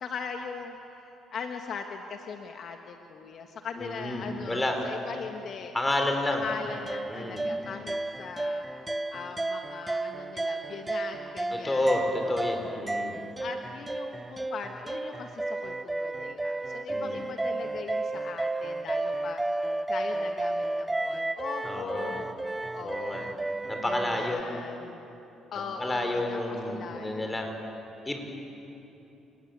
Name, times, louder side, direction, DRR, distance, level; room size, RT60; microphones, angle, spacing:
voice 1, 0.0-5.7 6.3-12.0 12.2-23.4 23.8-25.0 25.5-27.5, left 5 dB, 60° left, 4 dB, 1.5 m, -40 dB
voice 2, 3.8-4.8 5.7-6.4 7.1-7.5 11.5-13.2 16.9-17.2 21.6-22.2 22.8-23.3 23.7-24.4 25.8-27.5 28.1-28.2, left 1 dB, 15° left, 3 dB, 4.7 m, -30 dB
sound 1, 6.7-24.4, right 2 dB, 15° right, 0.6 m, -33 dB
28.5 x 19.5 x 8.2 m, 3.0 s
cardioid pair, 85°, 0 cm